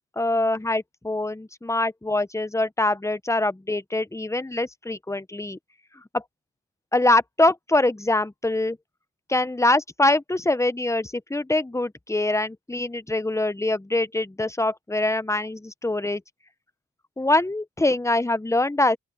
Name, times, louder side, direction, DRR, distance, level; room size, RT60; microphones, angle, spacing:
voice 1, 0.2-5.6 6.1-6.2 6.9-8.8 9.3-16.2 17.2-19.0, left 2 dB, 10° left, 0.9 m, -24 dB
open air
cardioid pair, 60°, 31 cm